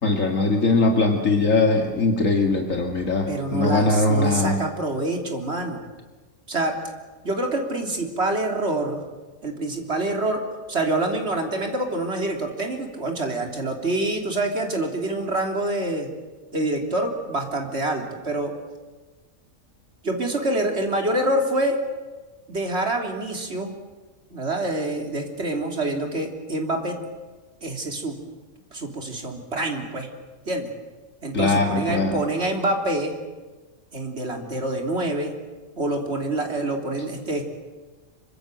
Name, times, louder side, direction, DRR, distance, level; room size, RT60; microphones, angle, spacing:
voice 1, 0.0-4.6 31.3-32.2, left 3 dB, 75° left, 2 dB, 2.4 m, -21 dB
voice 2, 3.3-5.8 6.5-6.8 7.2-9.0 9.4-10.4 10.7-16.1 16.5-18.5 20.0-21.8 22.5-23.7 24.3-27.0 27.6-28.2 28.7-30.1 30.5-30.7 31.2-33.2 33.9-35.4 35.8-37.4, right 2 dB, 55° right, 2 dB, 3.7 m, -26 dB
26.5 x 24.0 x 7.9 m, 1.3 s
omnidirectional pair, 1.4 m